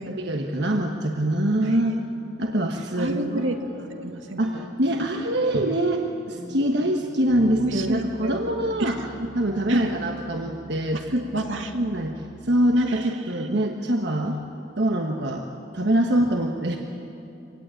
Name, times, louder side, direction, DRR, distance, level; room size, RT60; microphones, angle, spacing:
voice 1, 0.1-2.0 2.4-3.5 4.4-9.0 9.3-11.3 11.7-14.4 14.8-15.4 15.7-16.8, right 1 dB, 60° right, 2 dB, 1.4 m, -24 dB
voice 2, 1.6-2.0 2.6-2.7 3.0-3.7 4.0-4.7 7.6-8.4 8.8-9.3 9.7-9.9 10.9-11.8 12.8-13.5, right 1 dB, 80° right, 5 dB, 2.0 m, -30 dB
sound 1, 3.4-13.1, right 1 dB, 5° right, 2.6 m, -45 dB
25.5 x 18.0 x 9.0 m, 2.8 s
head